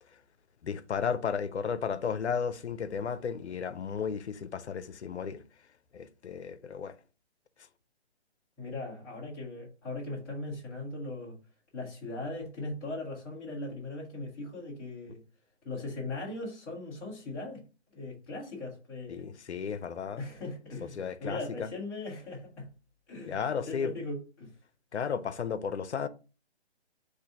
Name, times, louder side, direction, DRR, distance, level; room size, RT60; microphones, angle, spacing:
voice 1, 0.6-5.4 5.9-6.9 19.1-20.2 21.0-21.7 23.3-23.9 24.9-26.1, left 6 dB, 80° left, 0.6 m, -34 dB
voice 2, 8.6-11.4 11.7-15.2 15.6-17.6 17.9-19.2 20.2-22.7 23.1-24.5, left 2 dB, 5° left, 0.6 m, -39 dB
3.9 x 2.6 x 4.4 m
hypercardioid pair, 160°, 34 cm